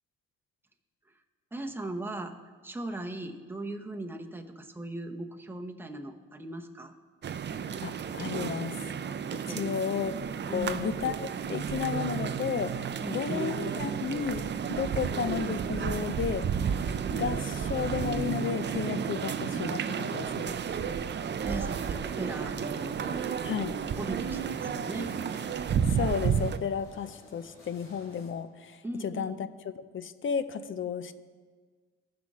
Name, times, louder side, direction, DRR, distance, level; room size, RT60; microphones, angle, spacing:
voice 1, 1.5-2.3 2.6-6.9 9.4-9.7 10.5-10.9 13.0-13.5 21.4-23.3 24.0-25.1 28.8-29.4, right 2 dB, 5° right, 4 dB, 0.8 m, -38 dB
sound 1, 7.2-26.6, right 7 dB, 35° right, 0.5 m, -32 dB
voice 2, 7.8-8.8 9.3-10.1 10.5-16.5 17.1-20.5 23.4-23.8 25.9-31.1, left 7 dB, 40° left, 12 dB, 0.6 m, -33 dB
sound 2, 17.3-28.3, left 2 dB, 85° left, 2.8 m, -53 dB
16.0 x 5.9 x 3.7 m, 1.5 s
cardioid pair, 90°, 30 cm